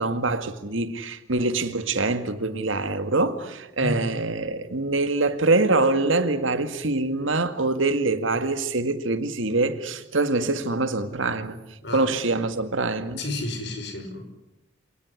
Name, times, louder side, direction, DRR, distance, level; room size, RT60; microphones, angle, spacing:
voice 1, 0.0-11.6 11.9-13.2, right 3 dB, 90° right, 2.0 m, -24 dB
voice 2, 11.8-12.4 13.2-14.2, left 2 dB, 60° left, 5.3 m, -32 dB
27.0 x 19.0 x 9.9 m
head